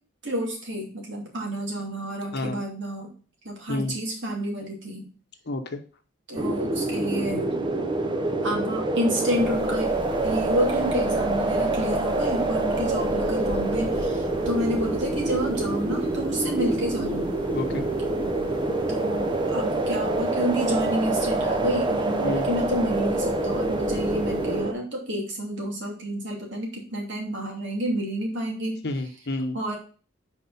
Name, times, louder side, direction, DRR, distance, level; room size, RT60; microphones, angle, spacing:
voice 1, 0.2-3.1 3.4-5.1 6.3-7.5 8.4-9.9 10.2-17.3 18.9-28.8 29.5-29.8, equal, 60° right, -1 dB, 2.6 m, -29 dB
voice 2, 5.5-5.8 17.5-17.9 22.2-22.5 28.8-29.6, left 2 dB, 55° left, 7 dB, 0.9 m, -29 dB
sound 1, 6.4-24.7, right 2 dB, 25° right, 0.7 m, -26 dB
sound 2, 9.3-24.6, equal, 5° left, 2.1 m, -41 dB
6.1 x 4.5 x 5.5 m, 0.39 s
head